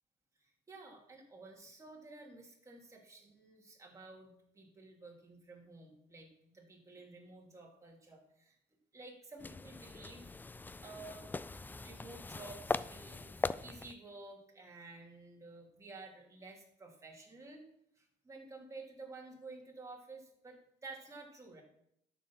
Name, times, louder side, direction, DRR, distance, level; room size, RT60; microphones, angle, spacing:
voice 1, 0.4-8.6 8.9-11.3 11.8-17.6 17.9-21.6, right 3 dB, 20° right, -1 dB, 3.0 m, -52 dB
sound 1, 9.4-14.0, left 3 dB, 10° left, 0.3 m, -40 dB
11.0 x 6.8 x 5.7 m, 0.75 s
cardioid pair, 110°, 17 cm